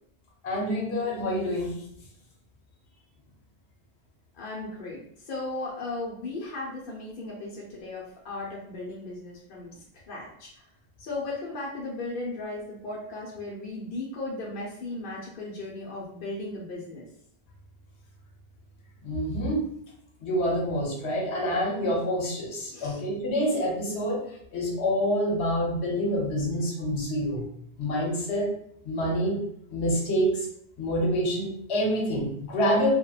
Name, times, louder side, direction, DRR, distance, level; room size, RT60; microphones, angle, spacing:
voice 1, 0.4-1.8 19.0-19.7 20.2-24.2 24.5-27.5 27.8-28.5 28.8-29.4 29.7-30.5 30.8-33.0, equal, 85° left, -1 dB, 1.0 m, -27 dB
voice 2, 4.3-10.5 11.0-17.1 22.7-23.0, left 2 dB, 60° left, -4 dB, 0.7 m, -36 dB
2.8 x 2.2 x 2.3 m, 0.68 s
omnidirectional pair, 1.1 m